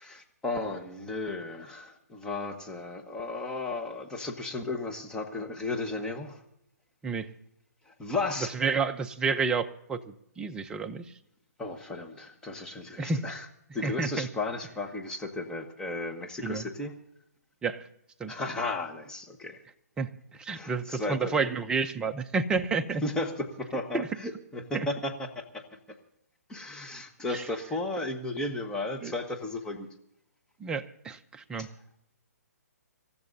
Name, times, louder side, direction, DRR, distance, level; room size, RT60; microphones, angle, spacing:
voice 1, 0.0-6.4 7.9-8.5 11.6-13.4 13.7-16.9 18.3-19.6 20.5-21.3 23.0-25.6 26.5-29.9 31.6-31.7, left 2 dB, 5° left, 1 dB, 1.4 m, -34 dB
voice 2, 8.5-11.0 13.0-13.2 13.8-14.3 16.4-16.7 17.6-17.8 18.2-18.3 20.0-23.0 23.9-24.1 24.7-24.9 27.3-27.4 29.0-29.1 30.6-31.7, right 4 dB, 10° right, 7 dB, 0.6 m, -30 dB
27.0 x 14.0 x 2.7 m, 0.75 s
hypercardioid pair, 150°, 9 cm